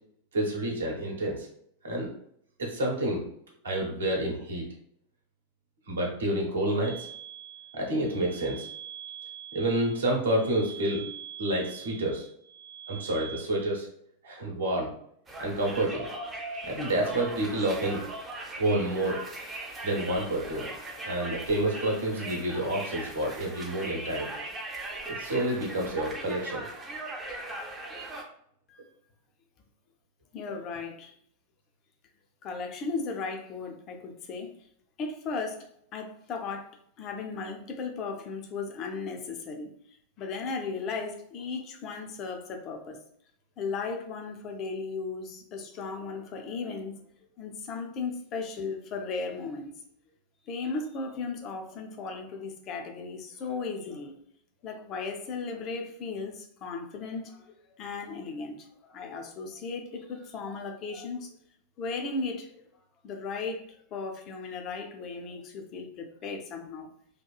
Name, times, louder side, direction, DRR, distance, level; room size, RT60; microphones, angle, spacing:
voice 1, 0.3-1.5 1.8-2.1 2.6-3.2 3.6-4.7 5.9-7.1 7.7-8.7 9.5-11.0 11.4-12.3 12.9-13.9 14.2-14.9 15.4-16.1 16.6-18.0 18.6-19.2 19.8-20.7 21.0-24.3 25.1-26.6, right 1 dB, 70° right, -1 dB, 0.8 m, -29 dB
sound 1, 6.8-13.4, right 10 dB, 80° left, 0.7 m, -44 dB
Conversation, 15.3-28.2, right 2 dB, 15° right, 0.5 m, -39 dB
voice 2, 30.3-31.1 32.4-34.5 35.0-39.7 40.2-43.0 43.6-47.0 47.4-49.7 50.5-54.1 54.6-57.5 57.8-61.4 61.8-62.6 63.0-66.9, left 4 dB, 35° left, 4 dB, 0.4 m, -36 dB
2.8 x 2.3 x 2.3 m, 0.68 s
figure-of-eight pair, 90°, 0 cm